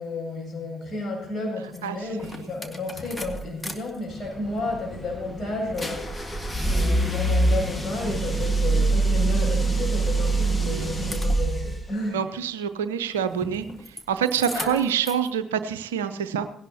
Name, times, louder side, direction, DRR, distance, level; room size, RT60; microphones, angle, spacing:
voice 1, 0.0-6.1 6.6-12.2 14.5-14.7, left 2 dB, 35° left, -2 dB, 7.6 m, -32 dB
sound 1, 1.8-1.9 2.2-3.7 4.1-11.8 13.3-14.0 14.3-15.3, right 2 dB, 10° left, 1.7 m, -25 dB
voice 2, 10.6-11.0 12.1-16.5, right 8 dB, 75° right, 11 dB, 0.6 m, -27 dB
18.5 x 17.0 x 2.9 m, 0.73 s
figure-of-eight pair, 45°, 0 cm